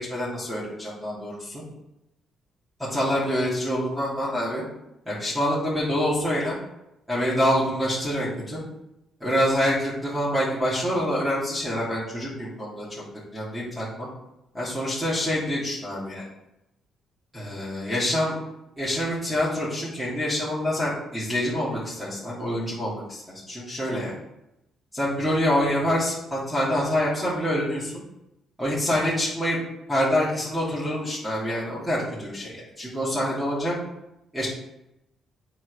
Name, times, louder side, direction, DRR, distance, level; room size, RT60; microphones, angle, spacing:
voice 1, 0.0-1.6 2.9-4.6 5.1-6.6 7.1-8.6 9.2-12.9 13.3-14.1 14.5-16.3 17.3-18.4 18.8-24.2 24.9-27.9 28.6-29.6 29.9-33.7 34.3-34.5, equal, 5° right, -9 dB, 3.1 m, -26 dB
7.5 x 4.7 x 5.1 m, 0.87 s
cardioid pair, 90°, 0 cm